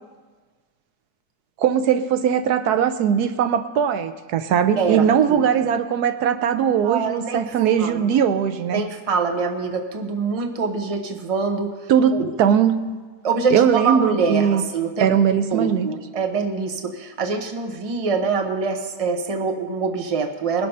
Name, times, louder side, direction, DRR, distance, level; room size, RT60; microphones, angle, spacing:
voice 1, 1.6-8.8 11.9-12.8 13.5-14.6 15.0-15.9, right 8 dB, 75° right, 10 dB, 1.2 m, -20 dB
voice 2, 4.8-5.4 6.8-7.5 7.8-8.1 8.7-11.7 12.1-12.3 13.2-15.1 15.5-20.7, right 4 dB, 25° right, 5 dB, 0.9 m, -24 dB
20.0 x 7.5 x 5.5 m, 1.4 s
omnidirectional pair, 1.7 m